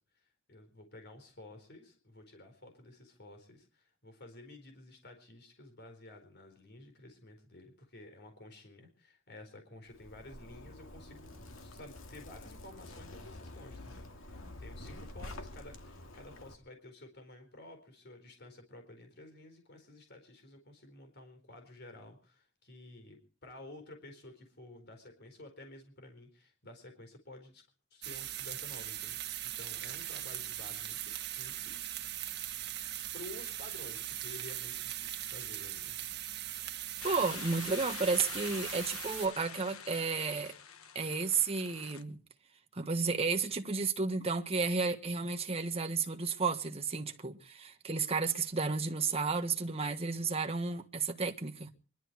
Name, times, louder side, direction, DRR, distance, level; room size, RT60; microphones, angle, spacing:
voice 1, 0.1-27.6 27.9-29.2 29.6-32.3 33.1-36.0, left 2 dB, 50° left, 4.3 m, -52 dB
Zipper (clothing), 9.9-16.5, left 1 dB, 70° left, 2.3 m, -48 dB
sound 1, 28.0-39.3, right 12 dB, 50° right, 1.6 m, -40 dB
sound 2, 37.0-42.0, left 7 dB, 85° left, 1.4 m, -46 dB
voice 2, 37.0-40.5 40.9-42.2 42.7-51.7, right 4 dB, 30° right, 1.5 m, -32 dB
24.5 x 12.5 x 4.7 m
head